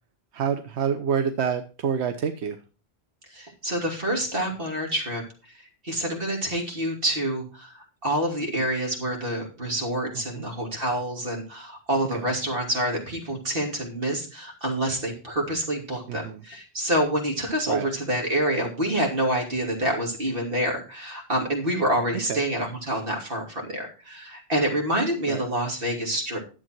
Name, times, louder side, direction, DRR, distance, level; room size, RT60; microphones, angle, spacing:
voice 1, 0.3-2.6 10.1-10.4 12.1-12.2 16.1-16.4 17.7-17.9 22.3-22.5 25.3-25.4, right 7 dB, 90° right, 8 dB, 1.1 m, -28 dB
voice 2, 3.3-5.2 5.8-26.4, right 1 dB, 55° right, 0 dB, 3.1 m, -27 dB
11.5 x 7.6 x 4.5 m, 0.36 s
omnidirectional pair, 1.1 m